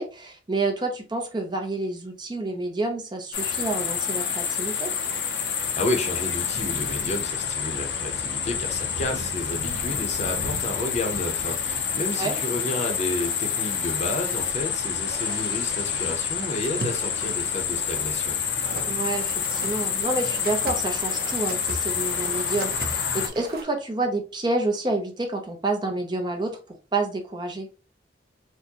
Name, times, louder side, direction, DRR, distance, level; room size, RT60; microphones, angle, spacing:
voice 1, 0.0-4.9 12.2-12.4 18.9-27.7, right 2 dB, 25° right, 0.6 m, -29 dB
sound 1, 3.3-23.3, left 7 dB, 80° left, 0.7 m, -28 dB
voice 2, 5.8-18.4, left 1 dB, 40° left, 0.7 m, -31 dB
sound 2, 13.7-23.6, right 3 dB, 55° right, 0.7 m, -40 dB
4.5 x 2.2 x 2.8 m
head